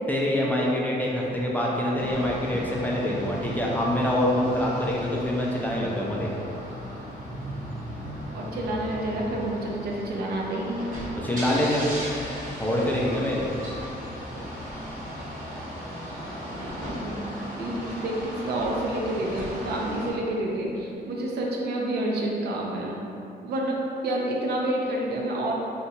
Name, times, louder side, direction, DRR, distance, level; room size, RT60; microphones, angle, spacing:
voice 1, 0.1-6.3 11.2-11.9 12.6-13.5, left 1 dB, 10° left, -4 dB, 0.3 m, -25 dB
sound 1, 2.0-20.1, equal, 50° right, 1.0 m, -36 dB
voice 2, 8.3-10.9 16.6-17.2 17.6-23.0 23.4-25.5, right 1 dB, 70° right, -2 dB, 0.5 m, -29 dB
2.7 x 2.2 x 3.9 m, 2.8 s
cardioid pair, 150°, 17 cm